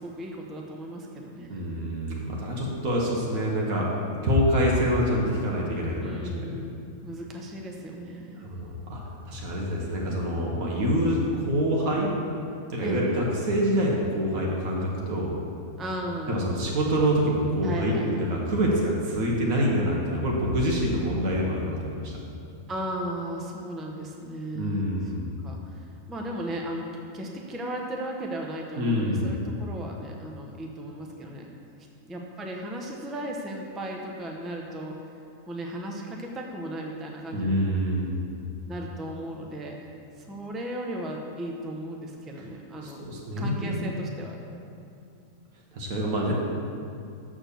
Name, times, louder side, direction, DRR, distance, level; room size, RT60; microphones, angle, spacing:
voice 1, 0.0-1.7 6.0-6.8 7.0-8.4 12.8-13.0 15.8-16.4 17.6-18.1 22.7-25.1 25.4-31.5 32.1-35.0 35.5-37.6 38.7-39.8 40.2-43.0 43.4-44.4, right 1 dB, ahead, 0 dB, 0.4 m, -36 dB
voice 2, 1.5-6.6 8.4-9.0 9.3-12.1 12.7-15.4 16.3-22.2 24.5-25.2 28.8-29.3 37.3-38.1 42.8-43.9 45.7-46.3, equal, 80° right, -3 dB, 1.6 m, -26 dB
6.3 x 6.2 x 6.8 m, 2.6 s
omnidirectional pair, 1.5 m